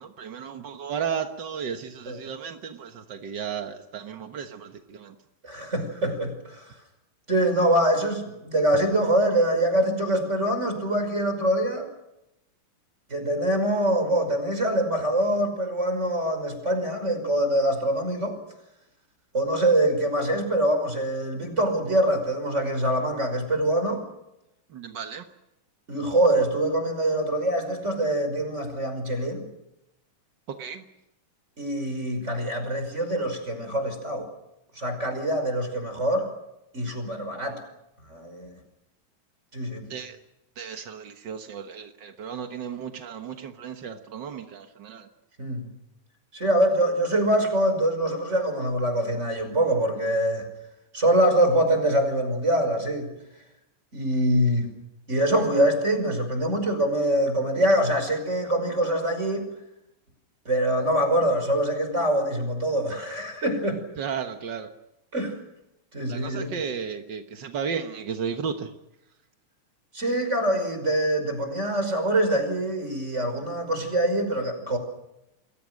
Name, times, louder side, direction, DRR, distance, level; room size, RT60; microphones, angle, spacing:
voice 1, 0.0-5.1 24.7-25.2 30.6-30.8 39.9-40.2 40.6-45.1 64.0-64.7 66.1-68.7, right 7 dB, 60° right, 6 dB, 1.2 m, -34 dB
voice 2, 5.4-6.7 7.3-11.9 13.1-18.4 19.3-24.0 25.9-29.4 31.6-34.3 34.8-36.3 36.7-37.6 38.1-38.5 39.5-39.9 45.4-45.6 46.3-50.5 50.9-53.1 53.9-54.7 55.1-59.5 60.5-63.8 65.1-65.4 65.9-66.5 69.9-74.8, right 1 dB, 20° right, 7 dB, 5.7 m, -24 dB
30.0 x 22.0 x 6.5 m, 0.88 s
omnidirectional pair, 3.9 m